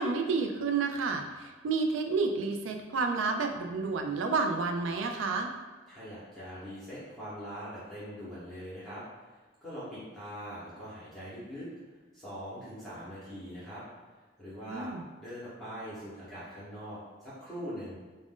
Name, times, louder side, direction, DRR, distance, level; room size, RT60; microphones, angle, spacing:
voice 1, 0.0-5.5 14.7-15.0, right 4 dB, 80° right, 4 dB, 0.3 m, -30 dB
voice 2, 5.9-9.0 9.6-11.7 12.1-13.8 14.4-14.9 15.2-18.0, equal, ahead, -11 dB, 0.8 m, -42 dB
2.4 x 2.0 x 3.6 m, 1.4 s
head